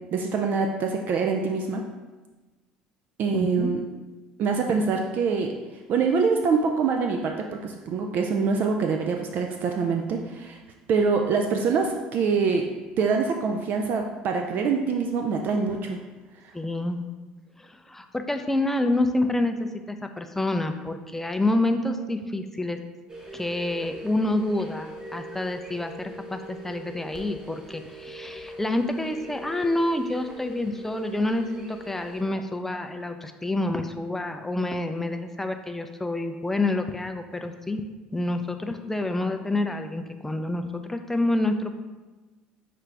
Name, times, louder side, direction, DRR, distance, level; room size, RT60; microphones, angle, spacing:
voice 1, 0.1-1.8 3.2-3.8 4.4-5.6 5.9-10.6 10.9-12.7 13.0-16.0 16.4-16.5, right 5 dB, 55° right, 3 dB, 0.4 m, -25 dB
voice 2, 3.3-3.7 16.5-17.0 17.6-22.8 23.3-37.9 38.1-41.8, left 2 dB, 10° left, 6 dB, 0.4 m, -28 dB
sound 1, 23.1-32.2, right 1 dB, 20° right, 0.9 m, -42 dB
5.8 x 2.5 x 3.3 m, 1.2 s
hypercardioid pair, 70°, 4 cm